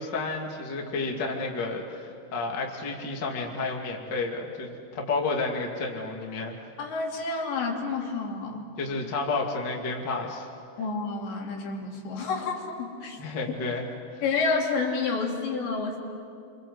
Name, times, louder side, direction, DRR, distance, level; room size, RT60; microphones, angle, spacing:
voice 1, 0.0-6.6 8.8-10.5 13.2-14.2, left 3 dB, 30° left, 0 dB, 2.1 m, -31 dB
voice 2, 6.8-8.7 10.8-13.2 14.2-16.0, left 4 dB, 70° left, 0 dB, 5.1 m, -29 dB
29.0 x 25.5 x 7.9 m, 2.4 s
omnidirectional pair, 5.3 m